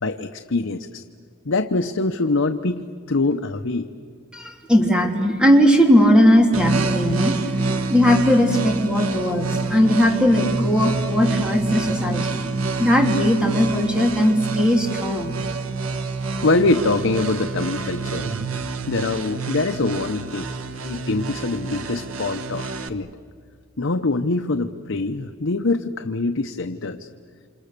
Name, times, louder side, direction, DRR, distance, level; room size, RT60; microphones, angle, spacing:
voice 1, 0.0-1.0 1.5-3.9 16.4-18.3 18.9-20.5 20.8-23.1 23.8-27.1, left 3 dB, 65° left, 7 dB, 0.9 m, -24 dB
voice 2, 4.3-12.4 12.8-15.3, equal, 5° right, 2 dB, 3.1 m, -18 dB
sound 1, 6.5-22.9, right 4 dB, 85° right, 1.4 m, -27 dB
28.5 x 27.5 x 6.8 m, 2.2 s
head